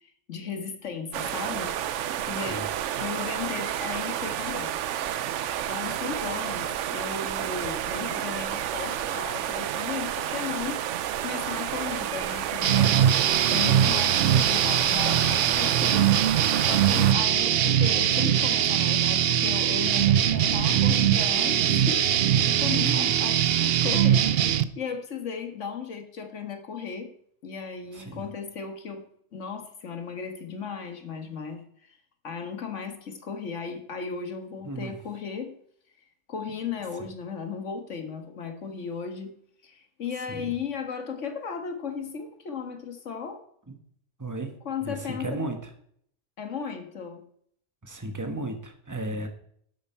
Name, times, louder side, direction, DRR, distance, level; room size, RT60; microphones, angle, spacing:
voice 1, 0.0-2.7 3.0-4.7 5.7-10.8 11.2-13.1 13.5-16.1 16.7-27.1 27.4-29.0 29.3-32.0 32.2-35.5 36.3-39.3 39.6-43.4 44.7-45.4 46.4-47.2, left 6 dB, 90° left, 6 dB, 1.8 m, -36 dB
sound 1, 1.1-17.1, right 11 dB, 90° right, 1.0 m, -31 dB
voice 2, 2.3-2.7 22.7-23.1 27.9-28.2 34.6-34.9 37.0-37.1 40.3-40.5 43.7-43.8 44.2-44.5 44.8-45.6 47.8-49.3, right 2 dB, 15° right, 5 dB, 1.4 m, -34 dB
sound 2, 12.6-24.6, right 10 dB, 60° right, 0.7 m, -22 dB
11.5 x 8.3 x 4.5 m, 0.65 s
omnidirectional pair, 1.2 m